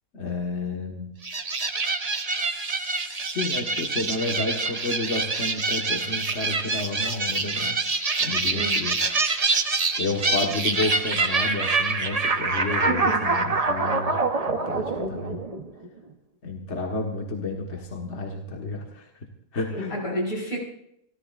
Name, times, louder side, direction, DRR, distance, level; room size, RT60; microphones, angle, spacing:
voice 1, 0.1-1.2 2.3-7.8 8.2-9.0 10.0-14.2 14.5-15.4 16.4-19.1 19.5-20.0, left 2 dB, 55° left, 1 dB, 1.9 m, -31 dB
sound 1, 1.2-15.9, right 3 dB, 30° right, 1.0 m, -26 dB
voice 2, 8.5-8.8 12.9-13.3 19.7-20.6, right 1 dB, 90° left, -3 dB, 5.4 m, -30 dB
27.5 x 14.5 x 2.5 m, 0.75 s
omnidirectional pair, 1.4 m